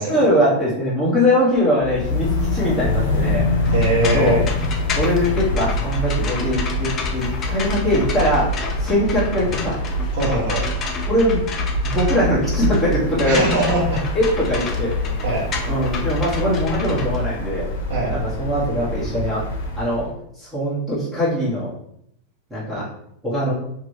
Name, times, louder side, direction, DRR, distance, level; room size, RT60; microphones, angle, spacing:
voice 1, 0.1-3.7 4.1-4.4 4.9-8.5 8.8-9.8 11.1-11.4 11.8-13.4 14.1-15.1 15.6-17.7 18.1-19.4 19.8-20.1 20.4-21.7 22.5-22.9 23.2-23.5, equal, 5° right, -10 dB, 1.0 m, -21 dB
sound 1, 1.8-20.1, left 1 dB, 80° left, 0.7 m, -25 dB
sound 2, 3.7-17.9, left 5 dB, 25° left, 0.4 m, -32 dB
voice 2, 3.7-4.4 10.1-10.6 13.2-14.0 15.2-15.5 17.9-18.1, right 2 dB, 50° right, -4 dB, 1.2 m, -22 dB
2.8 x 2.6 x 3.1 m, 0.73 s
supercardioid pair, 165°, 0 cm